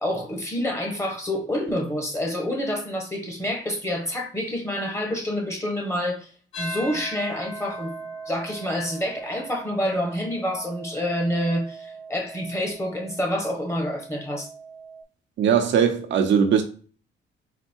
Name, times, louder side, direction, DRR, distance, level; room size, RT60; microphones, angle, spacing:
voice 1, 0.0-6.3 6.6-14.5, equal, 15° left, 1.4 m, -28 dB
sound 1, 6.5-15.0, right 2 dB, 75° left, 1.9 m, -40 dB
voice 2, 15.4-16.6, right 7 dB, 65° right, 0.9 m, -20 dB
4.2 x 2.2 x 4.5 m
cardioid pair, 90°, 20 cm